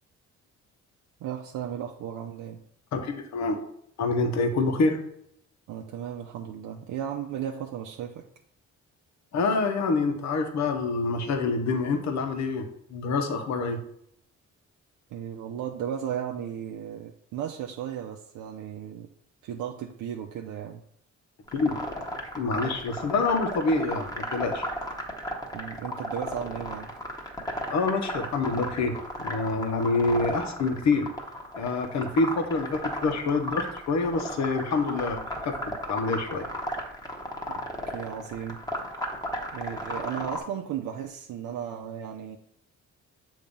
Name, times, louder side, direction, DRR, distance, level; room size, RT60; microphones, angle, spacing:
voice 1, 1.2-2.6 5.7-8.3 15.1-19.1 19.4-20.8 25.5-26.9 37.5-38.6 39.5-42.4, right 9 dB, 85° right, 1 dB, 0.6 m, -35 dB
voice 2, 2.9-3.6 4.0-5.0 9.3-13.8 21.5-21.8 22.4-24.6 27.7-31.1 31.5-35.6 35.9-36.4, left 3 dB, 65° left, 6 dB, 1.1 m, -26 dB
sound 1, 21.5-40.4, equal, 10° left, 1.2 m, -34 dB
7.1 x 2.9 x 5.2 m, 0.71 s
cardioid pair, 90°, 30 cm